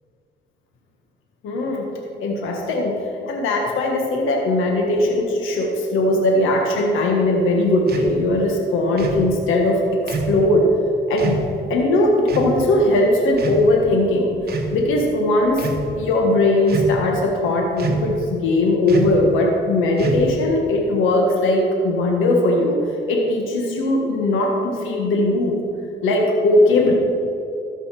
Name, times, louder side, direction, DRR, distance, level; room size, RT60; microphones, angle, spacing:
voice 1, 1.4-1.8 2.2-2.9 3.3-10.7 11.1-11.4 11.7-14.3 14.7-15.6 16.0-22.8 23.1-25.5 26.0-26.9, left 1 dB, 85° left, 0 dB, 1.5 m, -19 dB
sound 1, 7.9-8.1 9.0-9.3 10.1-10.4 11.2-11.4 12.3-12.6 13.3-13.9 14.4-14.8 15.5-15.8 16.7-17.1 17.8-18.2 18.9-19.2 20.0-20.5, right 3 dB, 55° right, 1.2 m, -26 dB
13.5 x 5.5 x 5.9 m, 2.6 s
cardioid pair, 90°, 20 cm